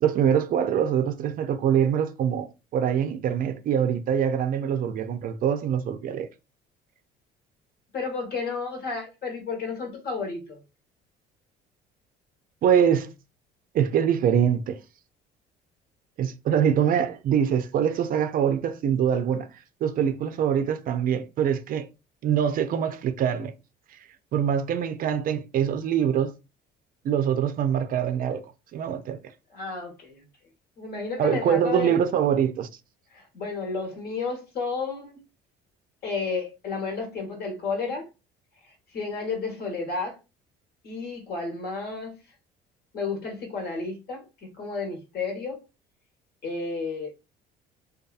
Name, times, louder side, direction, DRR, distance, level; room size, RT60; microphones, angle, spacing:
voice 1, 0.0-6.3 12.6-13.1 13.7-14.8 16.2-19.5 19.8-21.9 22.2-23.5 24.3-26.3 27.0-28.4 28.7-29.2 31.2-32.7, right 8 dB, 50° right, 0.4 m, -24 dB
voice 2, 7.9-10.6 29.5-30.2 30.8-32.0 33.1-35.2 36.0-38.1 38.9-40.2 40.8-42.2 42.9-44.2 44.6-45.6 46.4-47.1, left 4 dB, 55° left, 1.2 m, -31 dB
2.6 x 2.3 x 2.3 m
cardioid pair, 105°, 19 cm